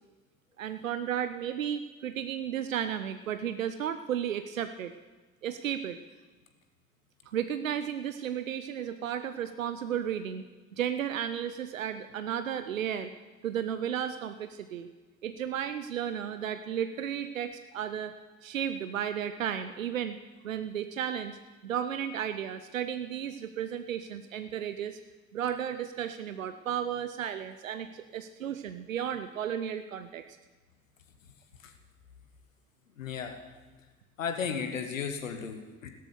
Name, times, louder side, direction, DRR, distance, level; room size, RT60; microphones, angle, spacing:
voice 1, 0.6-4.9 5.4-6.0 7.3-10.4 10.7-13.1 13.4-14.9 15.2-18.1 18.4-20.2 20.4-25.0 25.3-30.2, right 9 dB, 85° right, 10 dB, 0.6 m, -33 dB
voice 2, 33.0-33.4 34.2-35.9, left 6 dB, 85° left, 7 dB, 1.3 m, -34 dB
16.0 x 13.0 x 6.8 m, 1.3 s
figure-of-eight pair, 45°, 39 cm